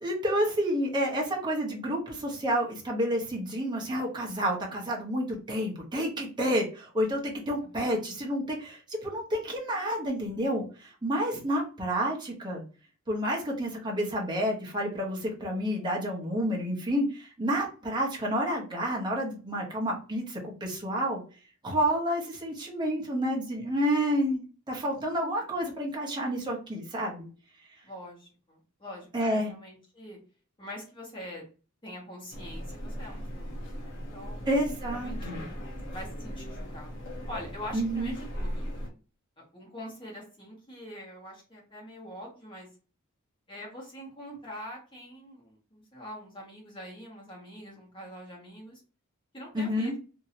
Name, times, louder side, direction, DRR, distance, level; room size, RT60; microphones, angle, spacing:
voice 1, 0.0-12.6 13.1-21.2 21.6-27.3 29.1-29.5 34.5-35.5 37.7-38.1 49.5-49.9, equal, 20° right, -2 dB, 0.9 m, -29 dB
voice 2, 27.8-30.2 30.6-31.4 31.8-34.4 34.9-35.5 35.9-37.0 37.3-38.7 39.4-42.7 43.5-48.8 49.3-50.0, left 1 dB, 25° left, -3 dB, 1.3 m, -44 dB
sound 1, 32.3-38.9, equal, 60° left, 1.0 m, -38 dB
2.9 x 2.7 x 2.8 m, 0.35 s
head